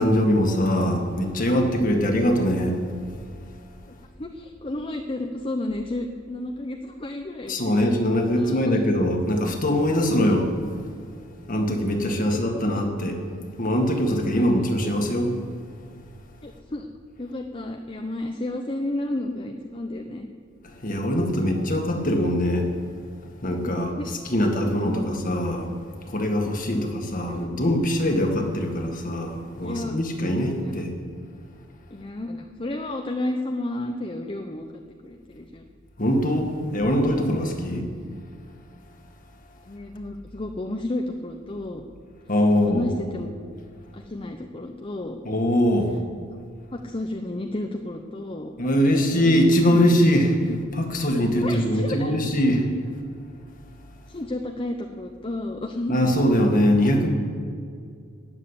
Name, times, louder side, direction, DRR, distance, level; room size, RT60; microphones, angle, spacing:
voice 1, 0.0-2.8 7.5-10.5 11.5-13.2 13.6-15.3 20.8-22.7 23.4-25.7 26.0-30.9 36.0-37.9 42.3-42.8 45.2-46.0 48.6-50.4 50.7-52.6 55.9-57.1, equal, 40° left, 3 dB, 1.8 m, -22 dB
voice 2, 4.2-7.8 8.3-8.8 12.2-12.9 14.3-14.5 16.4-16.9 17.2-20.3 23.6-24.1 24.8-25.1 26.7-27.5 29.6-30.0 30.6-30.9 31.9-34.7 35.0-35.6 37.6-38.0 39.7-41.8 42.5-43.6 43.9-45.2 46.7-48.5 50.5-50.6 51.2-52.2 54.1-56.2, left 1 dB, 25° left, 4 dB, 0.7 m, -32 dB
15.0 x 7.4 x 9.8 m, 2.2 s
head